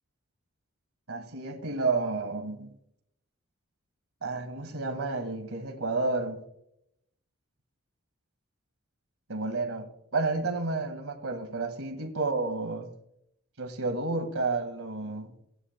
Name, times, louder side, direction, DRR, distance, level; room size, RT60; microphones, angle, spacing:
voice 1, 1.1-2.8 4.2-6.4 9.3-12.9 13.6-15.3, right 3 dB, 85° right, 1.9 m, -31 dB
17.5 x 11.0 x 2.2 m
head